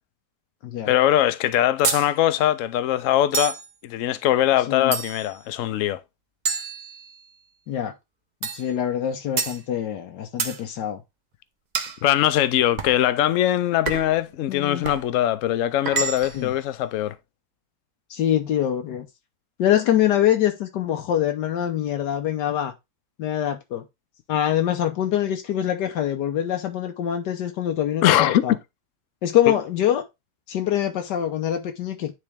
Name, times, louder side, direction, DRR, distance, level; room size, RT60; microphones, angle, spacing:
voice 1, 0.8-3.6 3.8-6.0 12.0-17.1 28.0-28.4 29.5-29.6, left 12 dB, 65° left, 0.8 m, -21 dB
sound 1, 1.8-2.1 3.3-3.7 4.9-5.4 6.5-7.4 8.4-8.7 9.4-9.6 10.4-10.6 11.7-12.0 12.8-13.0 13.9-14.2 14.8-15.1 15.9-16.5, right 5 dB, 55° right, 0.4 m, -28 dB
voice 2, 4.7-5.0 7.7-7.9 8.4-11.0 14.5-14.9 16.3-16.5 18.1-19.1 19.6-22.7 23.2-23.8 24.3-28.5 29.2-30.0 30.5-32.1, left 11 dB, 85° left, 1.4 m, -24 dB
9.7 x 3.4 x 3.3 m
omnidirectional pair, 1.8 m